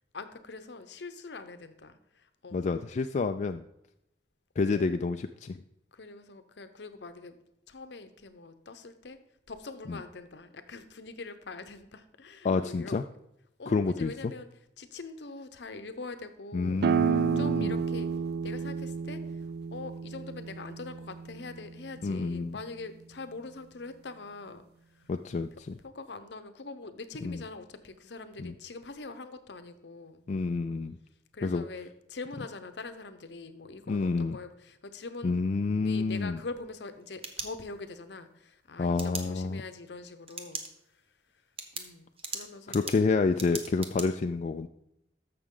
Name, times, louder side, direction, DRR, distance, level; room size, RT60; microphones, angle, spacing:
voice 1, 0.1-2.6 4.7-5.1 5.9-7.3 7.7-9.2 9.5-13.0 13.6-14.5 14.8-16.9 17.1-18.1 18.4-19.2 19.7-24.7 24.9-25.1 25.8-30.2 31.3-35.4 35.8-40.6 41.7-43.0, left 3 dB, 70° left, 10 dB, 0.8 m, -43 dB
voice 2, 2.5-3.6 4.6-5.6 9.9-10.0 12.4-13.0 13.7-14.3 16.5-17.8 22.0-22.6 25.1-25.8 27.2-27.4 28.4-28.5 30.3-31.0 31.4-31.6 33.9-34.4 35.2-36.4 38.8-39.6 42.7-44.7, left 4 dB, 40° left, 6 dB, 0.3 m, -29 dB
sound 1, 16.8-22.2, right 7 dB, 60° right, 0.3 m, -31 dB
sound 2, 36.8-38.0 39.0-39.2 40.3-40.7 41.1-41.2 41.6-44.1, right 5 dB, 35° right, 1.0 m, -39 dB
13.5 x 6.0 x 3.8 m, 0.80 s
head